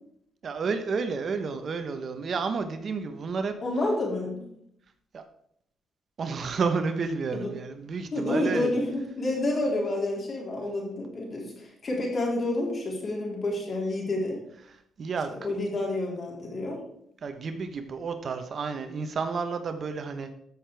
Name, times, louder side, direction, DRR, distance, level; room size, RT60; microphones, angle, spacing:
voice 1, 0.4-3.5 5.1-5.2 6.2-8.7 14.7-15.3 17.2-20.3, right 5 dB, 50° right, 8 dB, 1.0 m, -31 dB
voice 2, 3.6-4.5 7.3-7.5 8.1-14.4 15.4-16.8, left 2 dB, 40° left, -2 dB, 3.8 m, -29 dB
13.5 x 6.6 x 3.5 m, 0.73 s
cardioid pair, 90°, 0 cm